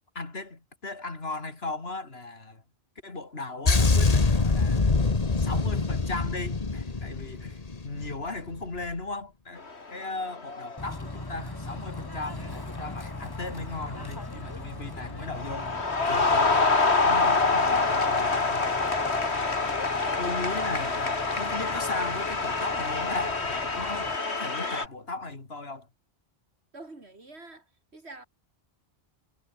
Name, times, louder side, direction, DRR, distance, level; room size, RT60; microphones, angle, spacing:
voice 1, 0.1-2.6 3.0-5.0 5.4-15.7 16.1-18.7 20.2-25.9, left 3 dB, 70° left, 3.3 m, -37 dB
sound 1, 3.7-8.2 8.5-8.8, left 3 dB, 35° left, 1.5 m, -24 dB
sound 2, 9.6-10.1 10.3-10.9 11.8-12.0 12.4-14.6 14.9-24.9, left 3 dB, 85° left, 2.9 m, -26 dB
Bird / Train, 10.8-24.2, left 2 dB, 20° left, 1.5 m, -41 dB
voice 2, 26.7-27.6 27.9-28.3, right 2 dB, 80° right, 3.9 m, -45 dB
omnidirectional pair, 1.1 m